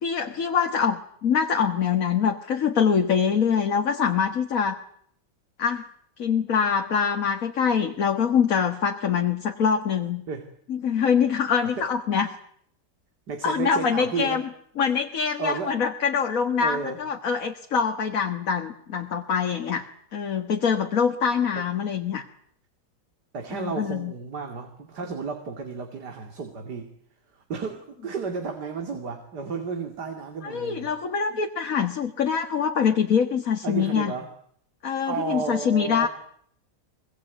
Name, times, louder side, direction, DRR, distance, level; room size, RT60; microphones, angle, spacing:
voice 1, 0.0-4.8 5.6-5.8 6.2-10.2 10.7-12.3 13.4-14.4 14.8-19.8 20.1-22.2 23.5-24.1 30.4-34.1 34.8-36.1, left 6 dB, 50° left, 4 dB, 1.8 m, -24 dB
voice 2, 13.3-14.4 15.4-15.8 16.6-17.0 21.6-21.7 23.3-26.9 27.3-30.9 33.6-34.3 35.1-36.1, right 5 dB, 65° right, 6 dB, 3.0 m, -32 dB
24.0 x 22.5 x 9.2 m, 0.65 s
omnidirectional pair, 1.9 m